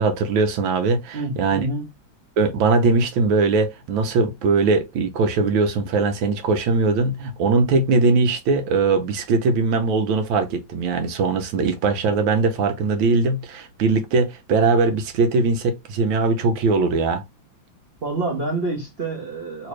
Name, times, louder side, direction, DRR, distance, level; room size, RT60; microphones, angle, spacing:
voice 1, 0.0-1.7 2.4-17.2, right 4 dB, 80° right, 1.5 m, -20 dB
voice 2, 1.1-1.9 18.0-19.7, right 2 dB, 45° right, 0.8 m, -27 dB
3.3 x 3.0 x 3.0 m
omnidirectional pair, 2.2 m